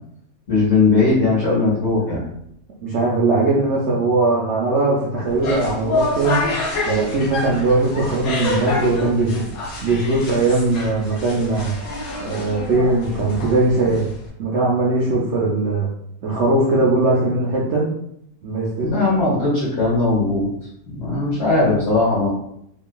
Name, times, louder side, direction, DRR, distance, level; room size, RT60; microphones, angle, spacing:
voice 1, 0.5-2.2 18.8-20.5 20.9-22.3, left 3 dB, 50° left, -7 dB, 1.1 m, -18 dB
voice 2, 2.8-6.4 6.8-9.4 9.8-11.8 12.2-14.1 14.4-15.9 16.2-17.9 18.4-19.0, right 2 dB, 70° right, -5 dB, 0.6 m, -20 dB
sound 1, 5.3-14.3, left 2 dB, 70° left, 1.1 m, -27 dB
2.8 x 2.4 x 2.2 m, 0.74 s
omnidirectional pair, 1.7 m